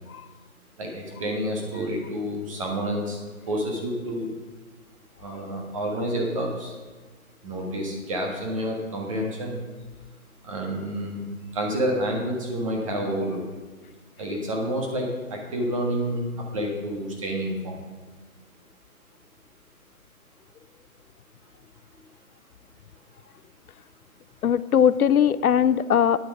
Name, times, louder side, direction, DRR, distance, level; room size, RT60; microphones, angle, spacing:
voice 1, 0.8-3.2 3.5-4.3 5.2-6.7 7.4-9.6 10.4-11.2 11.5-13.4 14.2-17.8, equal, 25° right, 0 dB, 1.5 m, -29 dB
voice 2, 24.4-26.2, left 8 dB, 85° left, 16 dB, 0.6 m, -20 dB
10.0 x 8.9 x 4.9 m, 1.4 s
figure-of-eight pair, 160°, 43 cm